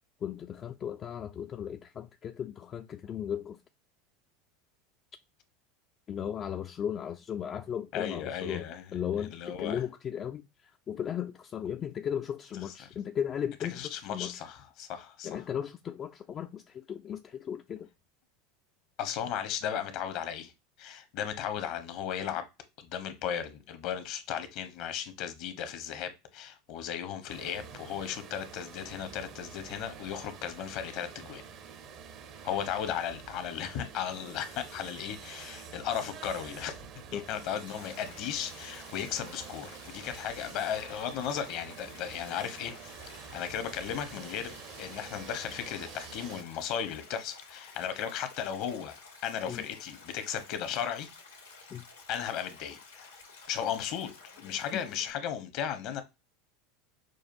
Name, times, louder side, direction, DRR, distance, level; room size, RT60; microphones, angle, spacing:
voice 1, 0.2-3.6 6.1-8.7 8.9-10.4 10.9-14.4 15.2-17.9 37.1-37.3 49.5-49.6 51.7-51.8 54.7-54.8, left 9 dB, 35° left, 0.4 m, -36 dB
voice 2, 7.9-8.9 9.2-9.8 12.7-12.8 13.7-15.4 19.0-20.5 20.8-22.4 22.8-31.4 32.4-36.8 37.1-42.9 43.3-49.0 49.2-51.1 52.1-53.1 53.5-54.1 54.4-56.0, left 9 dB, 55° left, 0.9 m, -36 dB
sound 1, 27.3-46.4, right 7 dB, 50° right, 0.7 m, -47 dB
Stream, 37.7-55.1, left 4 dB, 90° left, 1.5 m, -52 dB
6.3 x 2.4 x 2.5 m
hypercardioid pair, 80°, 0 cm